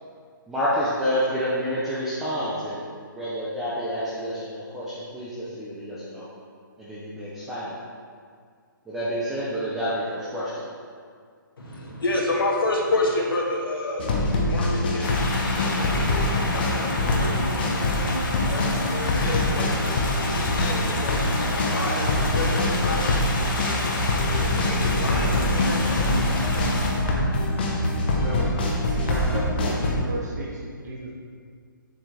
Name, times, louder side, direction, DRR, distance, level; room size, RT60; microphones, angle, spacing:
voice 1, 0.5-2.8 3.1-6.3 6.8-7.7 8.9-10.6, equal, 5° right, -10 dB, 0.4 m, -28 dB
voice 2, 11.6-14.1 14.4-15.2 15.7-19.7 20.1-21.2 21.5-23.2 24.3-26.2, left 2 dB, 85° left, -3 dB, 2.0 m, -30 dB
sound 1, 14.0-29.9, left 2 dB, 25° left, 0.8 m, -24 dB
sound 2, 15.0-26.9, left 2 dB, 70° left, 1.7 m, -30 dB
voice 3, 28.1-28.5 28.9-31.1, right 1 dB, 50° right, -4 dB, 1.8 m, -34 dB
7.3 x 7.1 x 3.3 m, 2.1 s
hypercardioid pair, 170°, 11 cm